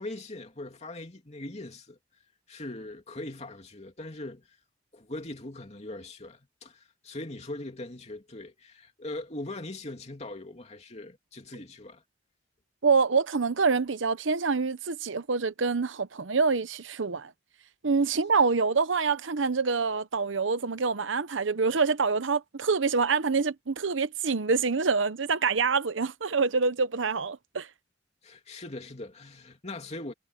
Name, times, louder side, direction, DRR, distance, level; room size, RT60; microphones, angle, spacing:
voice 1, 0.0-2.0 2.5-4.5 4.9-12.0 28.2-30.1, left 2 dB, 35° left, 2.9 m, -40 dB
voice 2, 12.8-17.3 17.8-27.7, right 4 dB, 80° right, 0.9 m, -26 dB
head